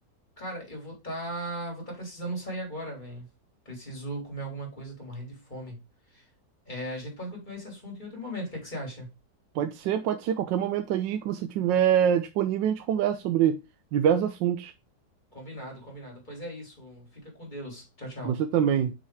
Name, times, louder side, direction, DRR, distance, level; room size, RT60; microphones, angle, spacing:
voice 1, 0.4-3.3 3.6-5.8 6.1-6.2 6.7-9.1 15.3-18.4, right 1 dB, 25° left, 3.0 m, -38 dB
voice 2, 9.5-13.6 13.9-14.7 18.2-18.9, right 9 dB, 90° right, 1.3 m, -25 dB
6.2 x 4.1 x 4.6 m
omnidirectional pair, 1.9 m